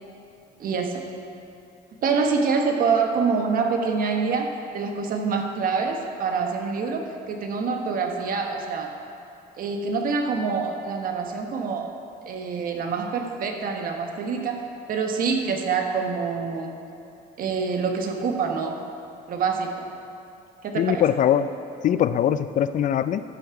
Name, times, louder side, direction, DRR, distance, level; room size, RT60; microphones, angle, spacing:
voice 1, 0.6-1.0 2.0-8.9 9.6-11.9 12.2-16.7 17.4-18.8 19.3-19.9 20.6-21.0, right 5 dB, 55° right, 4 dB, 1.3 m, -26 dB
voice 2, 20.8-21.5 21.8-23.2, left 10 dB, 50° left, 13 dB, 0.4 m, -21 dB
13.5 x 7.5 x 4.7 m, 2.7 s
cardioid pair, 110°, 17 cm